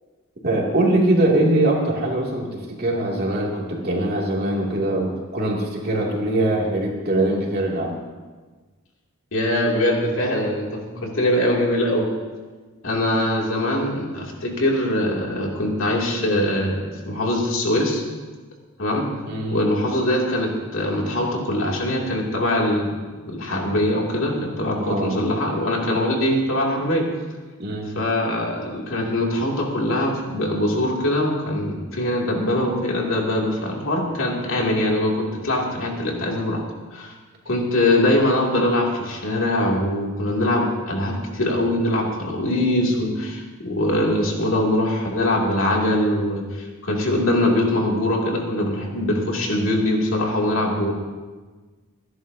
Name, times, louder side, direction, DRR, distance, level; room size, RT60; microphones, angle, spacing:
voice 1, 0.4-7.9 10.9-11.3 19.3-19.7 24.8-25.2 27.6-28.0, right 1 dB, 50° right, -2 dB, 2.6 m, -22 dB
voice 2, 9.3-12.1 12.8-18.0 18.8-19.1 19.5-23.0 23.3-27.1 27.9-36.6 36.9-37.1 37.5-50.9, left 1 dB, 65° left, -2 dB, 2.7 m, -22 dB
25.5 x 11.0 x 2.8 m, 1.3 s
head